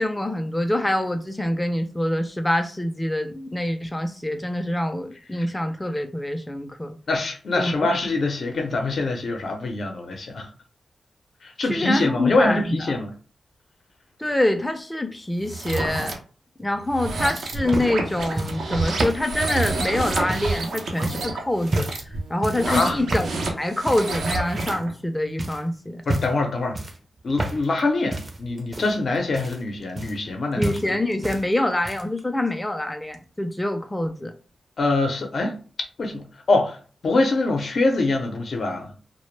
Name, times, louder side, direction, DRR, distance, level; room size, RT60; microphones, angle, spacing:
voice 1, 0.0-7.0 7.6-7.9 11.7-12.9 14.2-16.1 16.6-21.9 22.3-23.3 23.6-26.0 30.6-34.3, left 1 dB, 15° left, 0.4 m, -25 dB
voice 2, 7.1-10.5 11.4-13.1 22.7-23.0 26.1-26.8 27.2-30.8 34.8-35.6 36.0-36.8 37.0-38.9, left 2 dB, 65° left, 0.6 m, -24 dB
sound 1, 15.4-16.1 16.8-24.9, right 3 dB, 80° right, 0.6 m, -29 dB
sound 2, 17.1-20.6 21.0-21.3 21.7-22.1 22.4-22.7 23.1-23.4 23.9-24.2 24.6-25.1 25.4-25.6 26.0-26.4 26.7-27.8 28.1-30.4 30.6-31.4 31.7-32.2 33.1-33.2, right 2 dB, 40° right, 0.6 m, -30 dB
2.1 x 2.1 x 3.1 m
cardioid pair, 55°, 0 cm